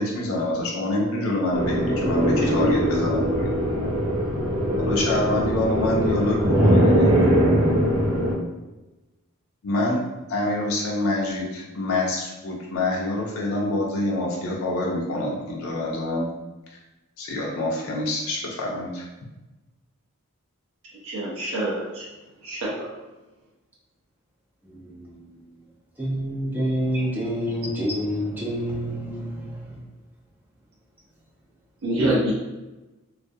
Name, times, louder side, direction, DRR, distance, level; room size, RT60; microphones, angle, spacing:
voice 1, 0.0-3.5 3.8-3.9 4.8-7.1 9.6-10.0 10.3-16.3 17.2-19.0, left 1 dB, 65° left, 0.4 m, -26 dB
sound 1, 1.5-8.3, equal, 85° right, 0.9 m, -21 dB
voice 2, 21.0-22.1 22.4-22.9 31.8-32.3, right 1 dB, 65° right, 0.5 m, -26 dB
voice 3, 24.6-25.5 26.0-29.8 32.0-32.1, equal, 10° right, 0.4 m, -28 dB
2.3 x 2.1 x 2.5 m
head